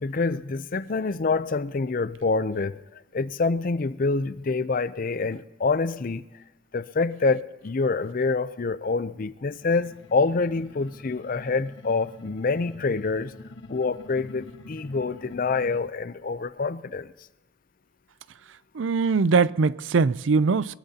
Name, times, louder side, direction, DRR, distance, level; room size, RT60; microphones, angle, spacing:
voice 1, 0.0-2.8 3.1-6.2 6.7-13.3 13.7-17.1, left 4 dB, 45° left, 0.5 m, -26 dB
sound 1, 9.6-15.9, left 2 dB, 75° left, 1.4 m, -46 dB
voice 2, 18.7-20.8, right 4 dB, 80° right, 0.5 m, -21 dB
22.5 x 21.5 x 2.8 m
head